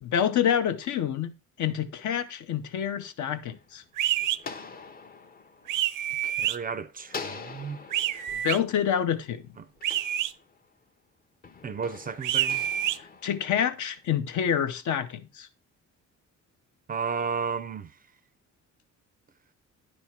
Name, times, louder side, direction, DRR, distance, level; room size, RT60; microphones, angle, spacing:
voice 1, 0.0-3.8 8.1-9.5 13.2-15.5, left 9 dB, 70° left, 0.7 m, -27 dB
sound 1, 2.9-6.6 7.1-10.8 11.4-14.1, left 4 dB, 30° left, 0.6 m, -45 dB
sound 2, 4.0-4.4 5.7-6.6 7.9-8.6 9.8-10.3 12.2-13.0, right 12 dB, 85° right, 0.5 m, -27 dB
voice 2, 6.2-7.8 9.6-9.7 11.6-12.6 16.9-17.9, right 6 dB, 30° right, 0.3 m, -33 dB
9.9 x 3.5 x 4.2 m
cardioid pair, 140°, 30 cm